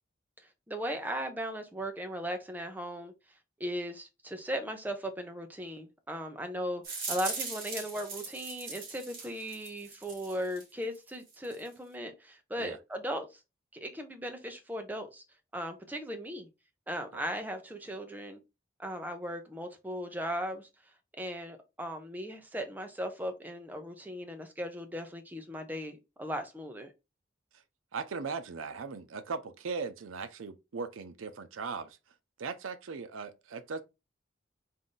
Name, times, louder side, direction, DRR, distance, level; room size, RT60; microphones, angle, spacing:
voice 1, 0.7-3.1 3.6-13.4 13.7-15.2 15.5-16.5 16.9-18.4 18.8-20.7 21.2-26.9, equal, 10° right, 0.6 m, -37 dB
sound 1, 6.8-10.7 10.9-11.7, right 4 dB, 45° right, 1.8 m, -40 dB
voice 2, 27.9-32.0 32.4-33.8, right 5 dB, 90° right, 0.5 m, -38 dB
3.7 x 2.6 x 3.8 m
head